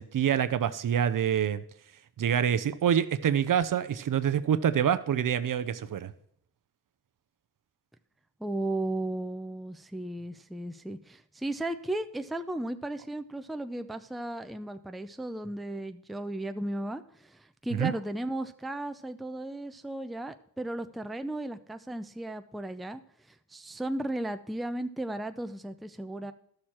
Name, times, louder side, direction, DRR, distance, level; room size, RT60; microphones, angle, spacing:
voice 1, 0.0-1.6 2.2-6.1 17.7-17.9, right 9 dB, 60° right, 13 dB, 0.6 m, -26 dB
voice 2, 8.4-23.0 23.3-26.3, right 1 dB, ahead, 9 dB, 0.5 m, -35 dB
13.0 x 6.5 x 4.4 m, 0.67 s
cardioid pair, 90°, 38 cm